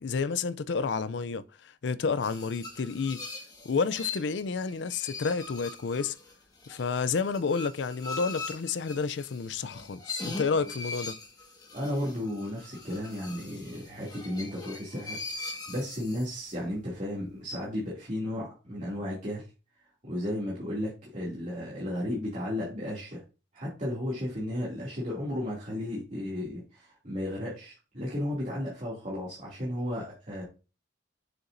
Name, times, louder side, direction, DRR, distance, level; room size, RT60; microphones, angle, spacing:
voice 1, 0.0-3.2 3.6-6.2 6.7-11.1, left 5 dB, 65° left, 0.4 m, -30 dB
sound 1, 2.2-16.7, left 3 dB, 20° left, 1.6 m, -41 dB
voice 2, 11.7-19.4 20.0-23.2 23.5-30.4, left 1 dB, 40° right, 2.6 m, -34 dB
7.0 x 6.7 x 2.6 m
head